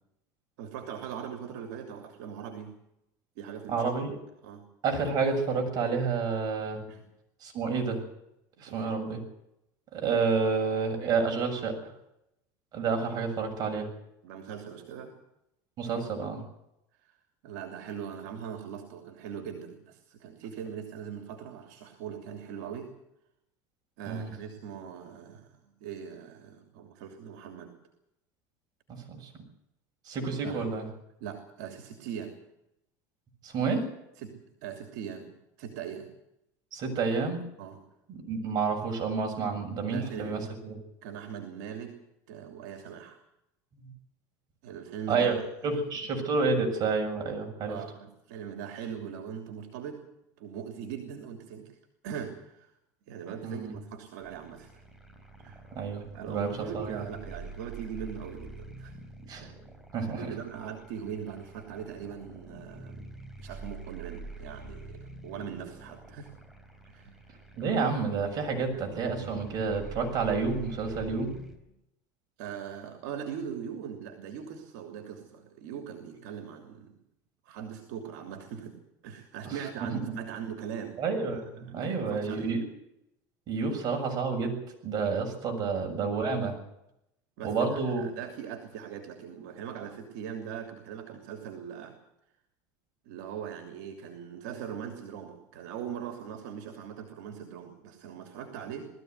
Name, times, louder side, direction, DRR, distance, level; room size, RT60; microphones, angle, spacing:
voice 1, 0.6-2.8 3.4-3.9 4.4-4.7 6.9-7.1 8.6-8.9 13.3-13.4 14.2-15.2 17.0-17.2 17.4-22.9 24.0-27.7 30.4-30.6 31.2-32.4 34.2-36.1 37.6-37.8 39.3-39.6 39.8-40.5 41.0-41.9 42.3-43.2 44.6-45.3 45.6-46.1 47.7-50.0 50.4-51.8 52.0-52.7 53.1-54.8 55.4-55.6 56.1-59.0 59.4-59.5 60.2-66.3 66.9-67.2 72.4-77.0 77.4-81.0 81.6-82.5 83.6-83.7 85.6-85.7 87.4-92.0 93.0-98.9, right 8 dB, 80° right, 4 dB, 3.0 m, -41 dB
voice 2, 3.7-4.2 4.8-6.8 7.4-8.0 8.6-9.2 9.9-11.8 12.7-13.9 15.8-16.4 24.1-24.3 28.9-29.3 30.1-30.9 33.4-33.9 36.7-37.4 38.1-40.8 43.7-43.8 45.1-45.4 45.6-47.8 53.4-53.7 55.7-57.0 59.3-59.5 59.9-60.3 67.6-71.3 79.4-79.5 81.0-82.6 83.5-84.6 84.8-86.5 87.4-88.0, right 4 dB, 45° right, 3 dB, 7.1 m, -29 dB
sound 1, 54.2-71.6, right 2 dB, 5° right, 4.2 m, -46 dB
20.0 x 14.5 x 9.6 m, 0.84 s
supercardioid pair, 115°, 9 cm